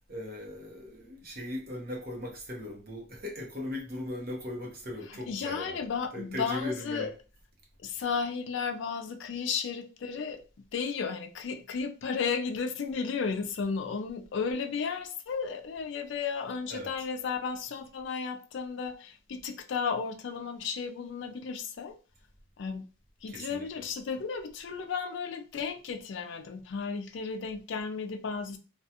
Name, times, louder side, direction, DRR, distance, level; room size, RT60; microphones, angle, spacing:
voice 1, 0.1-5.8 6.1-7.1 16.7-17.1 23.3-23.9, left 1 dB, 45° right, 0.8 m, -38 dB
voice 2, 5.2-7.1 7.8-10.4 10.7-22.0 22.6-22.8 23.2-28.6, left 5 dB, 60° left, 0.3 m, -34 dB
2.3 x 2.3 x 2.7 m
head